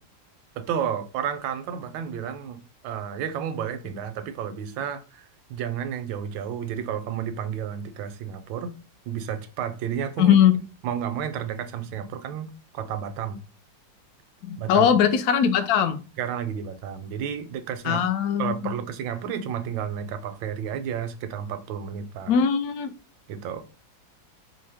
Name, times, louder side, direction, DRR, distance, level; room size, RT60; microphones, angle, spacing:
voice 1, 0.6-8.7 9.1-10.4 10.8-13.4 14.6-14.9 16.2-18.0 18.4-22.4 23.3-23.6, right 8 dB, 85° right, 1.3 m, -31 dB
voice 2, 10.2-10.6 14.4-16.0 17.8-18.7 22.3-22.9, left 8 dB, 75° left, 0.9 m, -20 dB
4.4 x 2.0 x 3.4 m
omnidirectional pair, 2.0 m